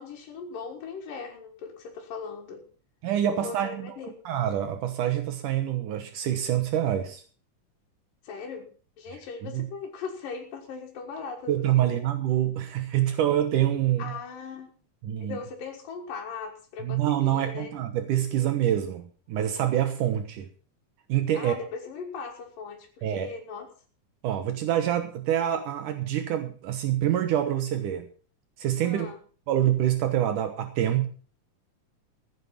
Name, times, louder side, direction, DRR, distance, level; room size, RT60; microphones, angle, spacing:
voice 1, 0.0-2.6 3.3-4.1 8.2-8.7 9.0-11.9 14.0-14.8 15.2-17.7 21.3-23.7 28.8-29.2, left 5 dB, 85° left, 0 dB, 3.4 m, -39 dB
voice 2, 3.0-3.9 4.3-7.2 9.5-9.6 11.5-14.0 15.0-15.4 16.8-20.5 21.1-21.5 23.0-23.3 24.2-28.1 28.6-29.1 29.5-31.1, right 11 dB, 75° right, 8 dB, 2.6 m, -26 dB
15.5 x 9.4 x 5.8 m, 0.40 s
omnidirectional pair, 3.8 m